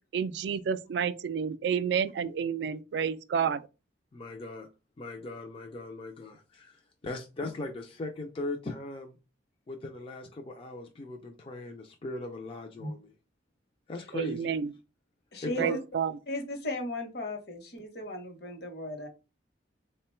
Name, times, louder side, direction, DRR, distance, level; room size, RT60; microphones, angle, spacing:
voice 1, 0.1-3.6 14.1-14.7 15.6-16.1, right 7 dB, 65° right, 0.3 m, -30 dB
voice 2, 4.1-4.7 5.0-9.2 9.7-13.1 13.9-14.5 15.4-15.8, left 2 dB, 30° left, 0.4 m, -39 dB
voice 3, 15.3-15.8 16.3-19.1, left 1 dB, 55° left, 0.9 m, -36 dB
3.7 x 2.2 x 4.3 m
head